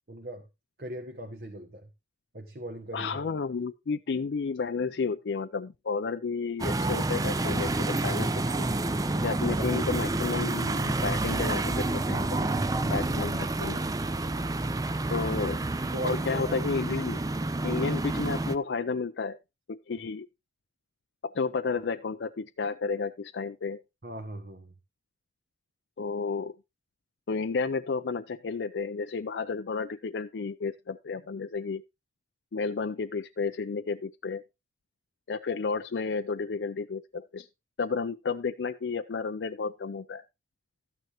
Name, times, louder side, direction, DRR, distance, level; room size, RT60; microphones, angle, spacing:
voice 1, 0.1-0.5 0.8-1.9 2.3-3.3 9.5-9.7 12.4-12.7 15.1-15.3 15.8-16.6 24.0-24.7, right 1 dB, 55° right, 1.2 m, -39 dB
voice 2, 2.9-8.3 8.6-8.7 9.2-12.4 12.8-13.8 15.1-15.6 16.0-17.2 17.6-19.4 19.7-20.3 21.2-23.8 26.0-26.5 27.3-31.8 32.5-34.4 35.3-37.5 37.8-40.2, left 4 dB, 85° left, 0.5 m, -32 dB
sound 1, 6.6-18.6, right 2 dB, 20° right, 0.4 m, -29 dB
13.0 x 9.1 x 3.0 m
head